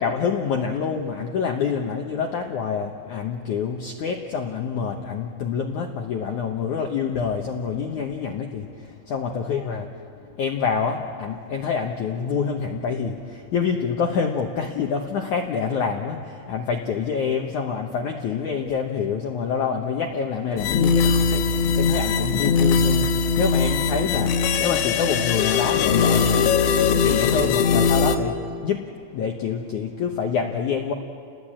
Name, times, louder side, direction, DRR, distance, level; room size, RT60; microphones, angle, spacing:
voice 1, 0.0-9.9 10.2-30.9, left 6 dB, 70° left, 2 dB, 1.9 m, -27 dB
sound 1, 20.6-28.2, left 5 dB, 90° left, 3.6 m, -20 dB
30.0 x 20.5 x 8.8 m, 2.3 s
omnidirectional pair, 5.1 m